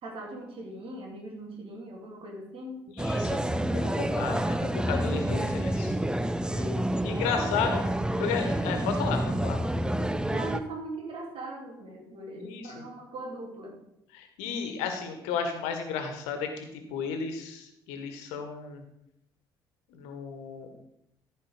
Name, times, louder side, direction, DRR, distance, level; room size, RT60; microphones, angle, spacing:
voice 1, 0.0-2.9 6.5-7.7 9.0-9.3 10.3-13.7, right 2 dB, 50° right, 0 dB, 3.3 m, -40 dB
voice 2, 3.0-3.4 3.7-5.9 7.0-7.8 8.2-9.6 12.4-12.8 14.1-18.8 19.9-20.7, left 6 dB, 65° left, 6 dB, 1.5 m, -33 dB
sound 1, 3.0-10.6, right 1 dB, 5° right, 0.7 m, -28 dB
14.0 x 5.3 x 5.2 m, 0.79 s
figure-of-eight pair, 45°, 12 cm